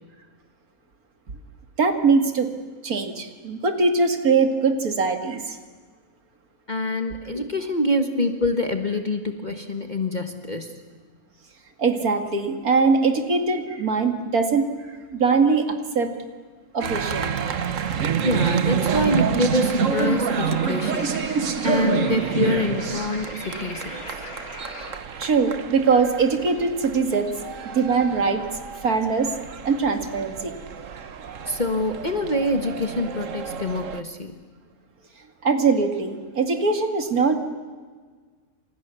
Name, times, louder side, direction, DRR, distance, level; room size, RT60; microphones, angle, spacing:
voice 1, 1.8-2.5 2.8-5.6 11.8-14.7 15.1-16.1 16.7-17.4 25.2-27.3 27.7-28.4 28.8-29.3 29.6-30.5 35.4-37.3, right 4 dB, 80° right, 7 dB, 2.6 m, -21 dB
voice 2, 6.7-10.8 18.2-21.3 21.6-24.0 31.5-34.3, left 1 dB, 30° left, 6 dB, 1.6 m, -25 dB
sound 1, 16.8-34.0, right 6 dB, 60° right, 1.5 m, -28 dB
sound 2, 19.6-25.0, left 3 dB, 80° left, 3.1 m, -39 dB
29.5 x 26.5 x 7.1 m, 1.5 s
omnidirectional pair, 1.5 m